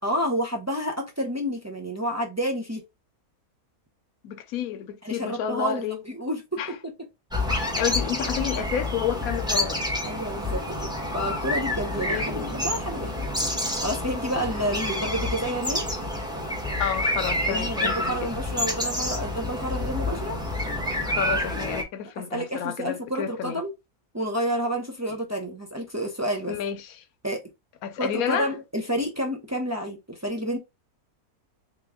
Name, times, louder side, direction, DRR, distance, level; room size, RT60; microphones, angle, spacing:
voice 1, 0.0-2.8 5.0-6.9 10.0-15.8 17.5-20.4 22.3-23.7 24.1-26.5 27.2-27.4 28.0-30.6, equal, 20° right, 0.4 m, -30 dB
voice 2, 4.2-6.0 6.6-6.8 7.5-9.8 12.0-12.5 16.8-18.3 21.0-23.6 26.5-27.0 27.8-28.5, left 10 dB, 75° left, 1.1 m, -30 dB
sound 1, 7.3-21.8, left 1 dB, 5° right, 0.8 m, -28 dB
3.3 x 3.0 x 3.5 m
omnidirectional pair, 1.6 m